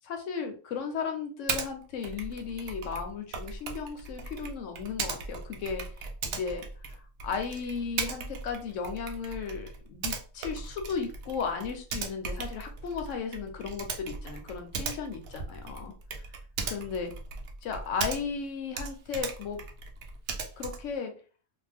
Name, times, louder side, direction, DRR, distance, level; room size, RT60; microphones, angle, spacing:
voice 1, 0.0-15.9 16.7-17.1 17.6-19.6 20.6-21.1, left 6 dB, 65° left, 5 dB, 0.8 m, -35 dB
Typing, 1.5-1.7 2.0-18.5 18.7-20.9, right 5 dB, 70° right, 0.7 m, -38 dB
2.5 x 2.3 x 3.4 m, 0.38 s
omnidirectional pair, 1.6 m